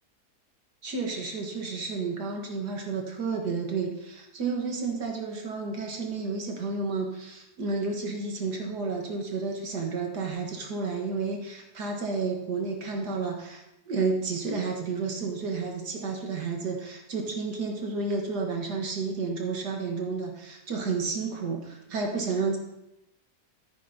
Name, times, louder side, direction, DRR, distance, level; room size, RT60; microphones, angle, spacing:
voice 1, 0.8-22.6, right 4 dB, 75° right, 2 dB, 1.8 m, -31 dB
14.0 x 9.3 x 2.8 m, 0.87 s
omnidirectional pair, 1.8 m